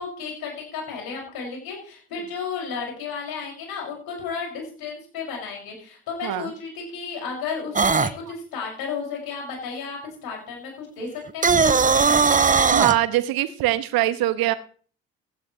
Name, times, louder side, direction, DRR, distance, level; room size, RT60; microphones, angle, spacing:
voice 1, 0.0-12.3, left 5 dB, 65° left, 0 dB, 6.2 m, -33 dB
sound 1, 7.8-8.1 11.3-13.0, right 5 dB, 20° right, 0.8 m, -18 dB
voice 2, 12.7-14.5, right 15 dB, 65° right, 15 dB, 1.2 m, -22 dB
16.0 x 11.5 x 3.2 m, 0.43 s
figure-of-eight pair, 45°, 39 cm